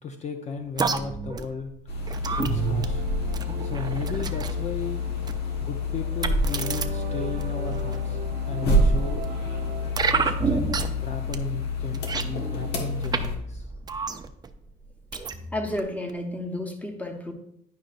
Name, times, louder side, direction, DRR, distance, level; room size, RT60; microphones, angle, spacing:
voice 1, 0.0-1.7 2.3-3.0 3.6-5.0 5.6-8.2 8.5-9.3 10.1-12.0 12.3-13.7, left 4 dB, 40° left, 5 dB, 0.6 m, -35 dB
sound 1, 0.8-4.6 5.3-5.5 6.2-6.9 7.4-8.0 8.7-9.2 10.0-11.1 11.3-11.4 11.8-13.3 13.5-14.5 15.1-15.8 16.1-16.2, right 4 dB, 25° right, 0.5 m, -29 dB
sound 2, 1.9-13.4, left 2 dB, 75° left, 1.4 m, -28 dB
sound 3, 2.1-10.0, right 5 dB, 60° right, 0.9 m, -40 dB
voice 2, 15.5-17.3, left 1 dB, 10° left, 4 dB, 1.0 m, -32 dB
10.5 x 5.2 x 2.5 m, 0.74 s
cardioid pair, 110°, 17 cm